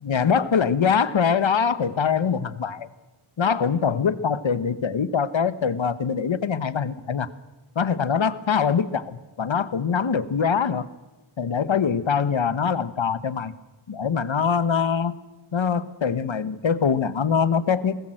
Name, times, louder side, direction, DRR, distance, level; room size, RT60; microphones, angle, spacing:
voice 1, 0.0-2.9 3.4-7.3 7.7-10.8 11.4-13.5 13.9-15.1 15.5-18.0, left 6 dB, 65° left, 14 dB, 1.2 m, -23 dB
22.0 x 18.5 x 7.8 m, 1.1 s
wide cardioid pair, 85°, 50 cm